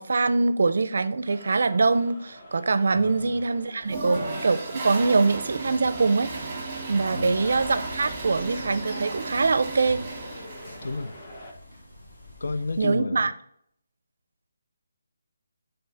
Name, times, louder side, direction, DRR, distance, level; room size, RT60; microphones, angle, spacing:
voice 1, 0.0-6.3 6.9-10.0 12.8-13.3, right 3 dB, 55° right, 0.5 m, -23 dB
sound 1, 1.3-11.5, left 1 dB, 20° left, 0.9 m, -43 dB
voice 2, 2.9-3.4 7.1-7.5 10.8-11.1 12.4-13.3, left 3 dB, 70° left, 0.5 m, -32 dB
Toilet flush, 3.8-11.1, right 3 dB, 15° right, 1.2 m, -35 dB
sound 2, 7.4-12.9, equal, 40° left, 2.5 m, -45 dB
7.8 x 3.8 x 4.0 m
hypercardioid pair, 175°, 0 cm